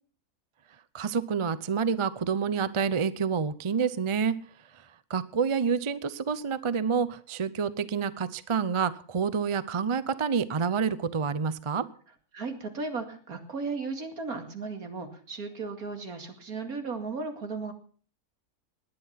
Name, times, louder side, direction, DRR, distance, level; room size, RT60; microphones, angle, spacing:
voice 1, 0.9-4.4 4.7-11.9, right 6 dB, 40° right, 16 dB, 0.4 m, -28 dB
voice 2, 12.3-17.7, right 4 dB, 70° right, 6 dB, 2.8 m, -35 dB
19.5 x 10.5 x 5.8 m, 0.43 s
omnidirectional pair, 1.6 m